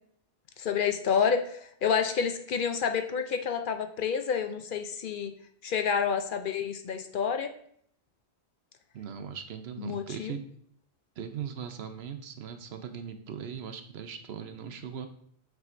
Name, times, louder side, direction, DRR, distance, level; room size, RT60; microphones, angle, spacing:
voice 1, 0.6-5.3 5.6-7.5 9.8-10.3, left 6 dB, 60° left, 7 dB, 0.7 m, -29 dB
voice 2, 8.9-10.5 11.2-15.1, right 7 dB, 75° right, 8 dB, 0.9 m, -39 dB
7.5 x 6.0 x 2.5 m, 0.65 s
omnidirectional pair, 1.1 m